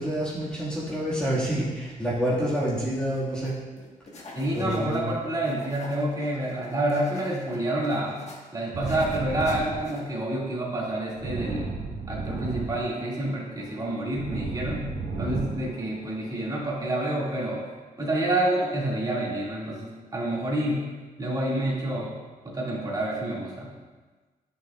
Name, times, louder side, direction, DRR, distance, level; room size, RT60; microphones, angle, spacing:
voice 1, 0.0-3.6 4.5-5.1, equal, 5° left, -9 dB, 1.7 m, -28 dB
sound 1, 3.0-3.5 3.8-5.1 5.4-8.4 8.8-10.1, left 2 dB, 50° left, 1.3 m, -45 dB
voice 2, 4.3-8.2 8.5-11.7 12.1-14.9 15.2-17.7 18.0-20.8 21.2-22.2 22.4-23.7, right 1 dB, 25° right, -5 dB, 2.0 m, -28 dB
sound 2, 8.7-16.8, right 3 dB, 70° right, 1.7 m, -34 dB
10.5 x 6.4 x 2.4 m, 1.3 s
cardioid pair, 120°, 15 cm